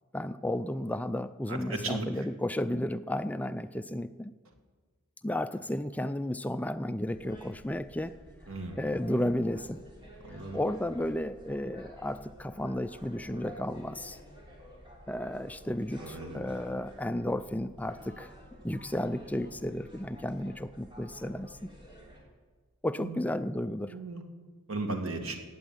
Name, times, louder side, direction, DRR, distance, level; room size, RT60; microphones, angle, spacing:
voice 1, 0.1-4.3 5.2-8.1 8.8-9.8 10.5-14.2 15.1-18.3 18.6-21.6 22.8-23.9, left 1 dB, 5° left, 11 dB, 0.4 m, -33 dB
voice 2, 1.5-2.3 8.5-8.8 10.2-10.6 16.0-16.5 23.0-23.2 23.9-24.2 24.7-25.4, right 2 dB, 75° right, 4 dB, 2.3 m, -36 dB
sound 1, 7.1-22.2, equal, 25° right, 3.6 m, -51 dB
15.5 x 8.9 x 9.3 m, 1.4 s
head